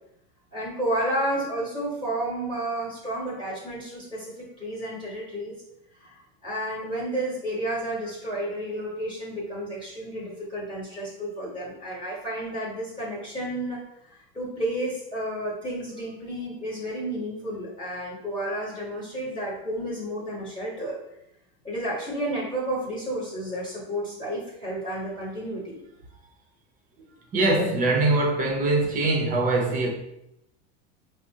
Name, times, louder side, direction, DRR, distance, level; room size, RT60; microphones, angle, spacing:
voice 1, 0.5-5.6 6.0-13.8 14.0-20.9 21.6-25.8, right 1 dB, 15° left, 1.1 m, -31 dB
voice 2, 27.3-29.9, right 2 dB, 25° right, 0.7 m, -22 dB
4.9 x 2.0 x 2.7 m
supercardioid pair, 135°, 33 cm